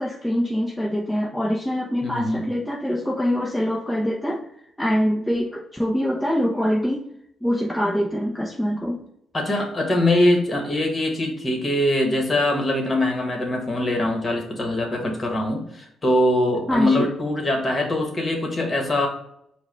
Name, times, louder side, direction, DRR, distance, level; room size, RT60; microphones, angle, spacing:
voice 1, 0.0-4.5 4.8-7.1 7.4-9.0 16.7-17.1, equal, 5° left, -3 dB, 0.6 m, -24 dB
voice 2, 2.0-2.5 9.3-19.1, left 1 dB, 30° left, 1 dB, 1.4 m, -22 dB
4.6 x 2.3 x 4.2 m, 0.73 s
cardioid pair, 90°, 0 cm